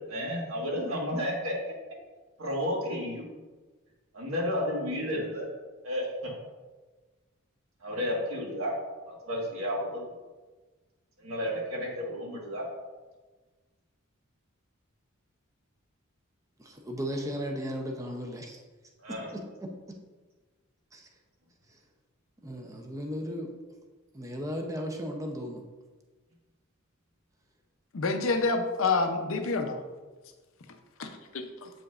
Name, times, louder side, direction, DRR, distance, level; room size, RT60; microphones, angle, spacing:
voice 1, 0.0-1.6 2.4-3.3 4.1-5.5 5.8-6.3 7.8-8.7 9.1-10.0 11.2-12.7 19.0-19.3, equal, 80° right, -2 dB, 1.5 m, -32 dB
voice 2, 16.6-18.6 19.3-19.4 20.9-21.0 22.4-23.5 24.1-25.6, equal, 15° right, 2 dB, 0.6 m, -35 dB
voice 3, 27.9-29.8 31.0-31.1 31.3-31.7, left 3 dB, 70° left, 6 dB, 0.6 m, -28 dB
7.8 x 5.0 x 2.4 m, 1.3 s
head